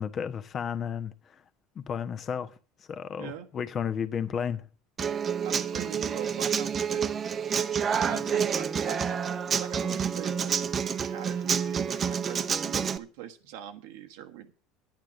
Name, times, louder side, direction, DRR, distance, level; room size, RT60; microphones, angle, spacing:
voice 1, 0.0-1.4 1.7-4.7 8.0-8.3, left 7 dB, 40° left, 1.2 m, -33 dB
voice 2, 3.2-3.5 5.4-7.3 7.9-10.5 11.0-14.5, right 10 dB, 80° right, 1.2 m, -42 dB
Human voice / Acoustic guitar, 5.0-13.0, right 7 dB, 35° right, 0.8 m, -28 dB
10.5 x 9.1 x 6.5 m
supercardioid pair, 95°, 0 cm